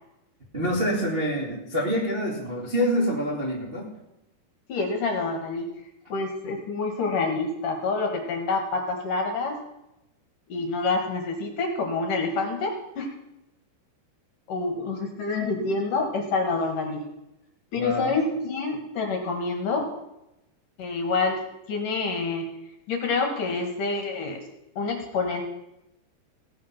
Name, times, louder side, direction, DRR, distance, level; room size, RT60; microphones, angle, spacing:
voice 1, 0.5-3.9 17.7-18.1, equal, 25° right, -5 dB, 1.2 m, -26 dB
voice 2, 4.7-5.7 6.1-9.6 10.5-13.1 14.5-17.0 17.7-19.9 20.8-21.4 21.7-22.5 22.9-24.4 24.8-25.4, left 3 dB, 60° left, 2 dB, 2.7 m, -27 dB
16.5 x 8.7 x 5.9 m, 0.89 s
omnidirectional pair, 5.1 m